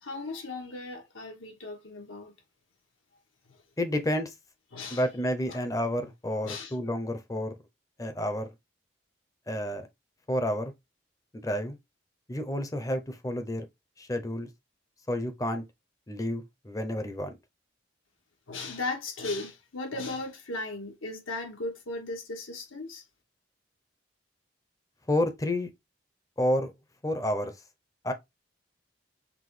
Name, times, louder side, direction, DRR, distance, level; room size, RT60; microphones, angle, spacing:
voice 1, 0.0-2.3 3.5-3.6 4.7-5.1 5.5-5.6 6.4-6.8 18.5-23.0, left 2 dB, 90° left, 1.3 m, -37 dB
voice 2, 3.8-4.3 4.9-7.5 8.0-8.5 9.5-9.8 10.3-10.7 11.4-11.8 12.3-13.7 14.0-14.5 15.1-15.6 16.1-17.4 25.1-25.7 26.4-26.7 27.0-27.5 28.0-28.1, left 1 dB, 15° left, 0.5 m, -30 dB
5.8 x 2.2 x 3.2 m
head